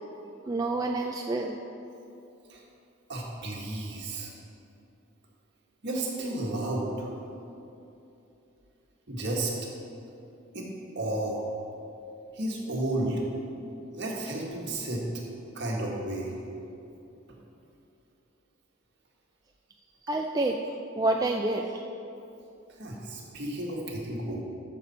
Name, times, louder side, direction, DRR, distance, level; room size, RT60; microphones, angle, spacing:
voice 1, 0.5-1.6 20.0-20.6 21.0-21.8, right 2 dB, 15° right, 1 dB, 0.3 m, -28 dB
voice 2, 3.1-4.3 5.8-7.1 9.1-9.5 10.5-11.4 12.3-13.2 13.9-15.1 15.5-16.3 22.7-24.4, right 1 dB, 55° right, -2 dB, 1.7 m, -32 dB
13.0 x 6.8 x 4.3 m, 2.8 s
head